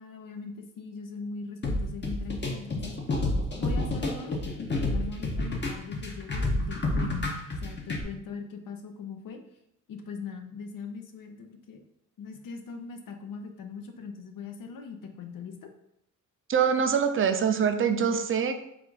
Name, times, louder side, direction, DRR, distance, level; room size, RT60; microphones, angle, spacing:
voice 1, 0.0-2.9 3.5-7.3 7.6-9.4 9.9-11.8 12.2-15.7, left 5 dB, 80° left, 5 dB, 0.7 m, -40 dB
sound 1, 1.6-8.0, left 2 dB, 35° left, 0.7 m, -29 dB
voice 2, 16.5-18.6, right 7 dB, 40° right, 7 dB, 0.4 m, -24 dB
3.8 x 2.4 x 4.6 m, 0.78 s
wide cardioid pair, 130°, 32 cm